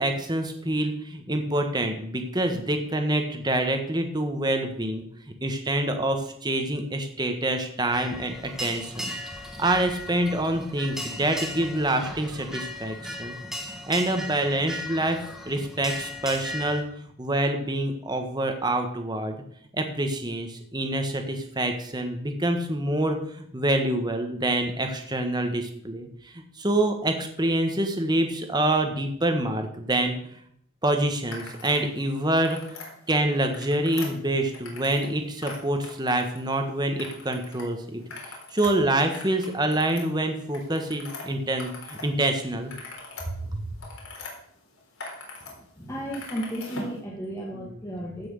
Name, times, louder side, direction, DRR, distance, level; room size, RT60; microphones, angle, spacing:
voice 1, 0.0-5.0 5.4-8.3 8.6-9.1 9.6-13.3 13.9-15.2 15.4-16.8 17.2-19.3 19.7-23.2 23.5-26.1 26.6-30.1 30.8-32.6 33.1-38.0 38.5-42.7 43.5-43.6 47.5-47.8, right 1 dB, 20° right, 5 dB, 1.4 m, -26 dB
sound 1, 7.9-16.8, left 1 dB, ahead, 1.5 m, -37 dB
sound 2, 31.3-31.9 32.2-32.9 33.4-35.1 35.4-36.6 37.0-37.6 38.0-42.1 42.4-44.3 44.8-45.5 45.8-47.0, left 3 dB, 90° left, 4.0 m, -41 dB
voice 2, 45.8-48.3, right 1 dB, 15° left, -3 dB, 1.8 m, -34 dB
15.5 x 6.2 x 6.5 m, 0.65 s
head